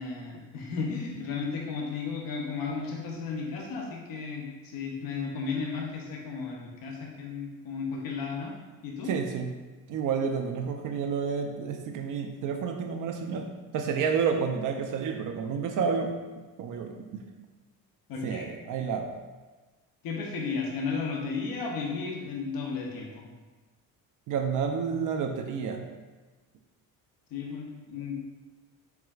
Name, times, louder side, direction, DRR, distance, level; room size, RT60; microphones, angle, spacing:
voice 1, 0.0-8.5 8.8-9.1 18.1-18.5 20.0-23.2 27.3-28.2, left 5 dB, 65° left, -1 dB, 0.8 m, -34 dB
voice 2, 9.0-9.5 9.9-13.5 13.7-16.1 16.6-17.2 18.2-19.1 24.3-25.8, right 6 dB, 55° right, 4 dB, 0.5 m, -30 dB
4.7 x 3.5 x 2.3 m, 1.2 s
cardioid pair, 110°, 37 cm